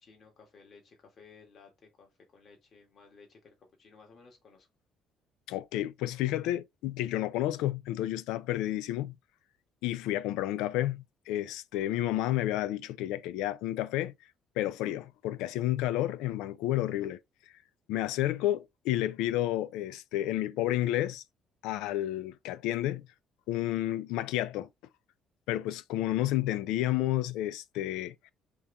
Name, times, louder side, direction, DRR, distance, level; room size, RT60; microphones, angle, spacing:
voice 1, 0.0-4.7, left 4 dB, 50° left, 1.6 m, -57 dB
voice 2, 5.5-9.1 9.8-14.1 14.6-17.2 17.9-21.2 21.6-23.1 23.5-24.7 25.5-28.3, left 14 dB, 90° left, 0.3 m, -31 dB
3.6 x 2.9 x 3.3 m
cardioid pair, 90°, 0 cm